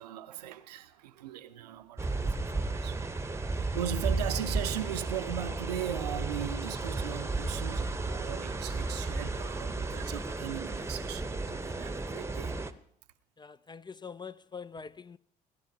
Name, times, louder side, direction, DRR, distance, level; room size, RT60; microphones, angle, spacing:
voice 1, 0.0-12.6, right 11 dB, 85° right, 0.6 m, -39 dB
sound 1, 2.0-12.7, right 3 dB, 15° right, 0.9 m, -33 dB
voice 2, 13.4-15.2, left 5 dB, 20° left, 0.4 m, -44 dB
21.5 x 10.0 x 2.8 m
hypercardioid pair, 50°, 20 cm